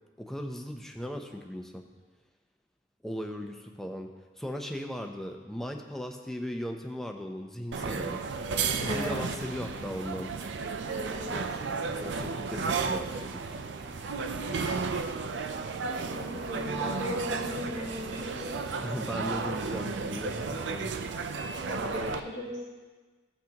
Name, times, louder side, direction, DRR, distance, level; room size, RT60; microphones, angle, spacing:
voice 1, 0.2-1.8 3.0-4.1 4.4-8.2 8.8-10.3 11.9-13.6 18.8-21.0, equal, ahead, 3 dB, 0.6 m, -37 dB
sound 1, 7.7-22.2, right 4 dB, 80° right, 0.5 m, -33 dB
voice 2, 8.9-9.2 10.8-11.4 14.6-14.8 16.1-18.5 21.7-22.5, left 1 dB, 40° right, -5 dB, 2.3 m, -37 dB
15.5 x 6.0 x 2.9 m, 1.3 s
head